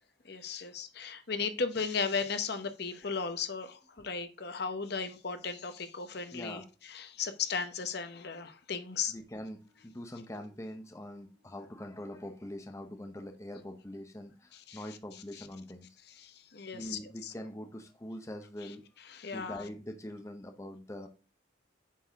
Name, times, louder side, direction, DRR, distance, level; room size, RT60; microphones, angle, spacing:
voice 1, 0.2-9.1 14.5-14.8 15.4-15.5 16.2-17.3 18.6-18.7 19.1-19.6, left 5 dB, 55° left, 0.8 m, -36 dB
voice 2, 6.3-6.7 9.1-15.9 16.7-18.8 19.3-21.1, left 1 dB, 15° left, 0.7 m, -43 dB
8.4 x 4.0 x 3.4 m
head